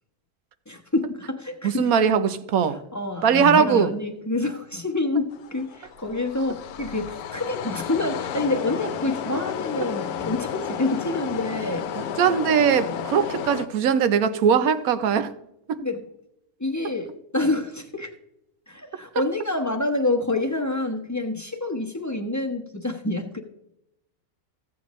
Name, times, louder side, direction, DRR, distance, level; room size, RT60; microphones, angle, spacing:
voice 1, 0.7-1.9 2.7-11.9 15.8-16.0 16.6-17.1 17.3-18.1 18.7-23.4, left 2 dB, 15° left, 0.9 m, -27 dB
voice 2, 1.6-2.8 3.2-3.9 12.0-15.3 15.7-15.8, right 7 dB, 70° right, 1.2 m, -20 dB
sound 1, 5.3-13.7, left 8 dB, 85° left, 1.2 m, -32 dB
15.5 x 8.5 x 3.1 m
omnidirectional pair, 1.6 m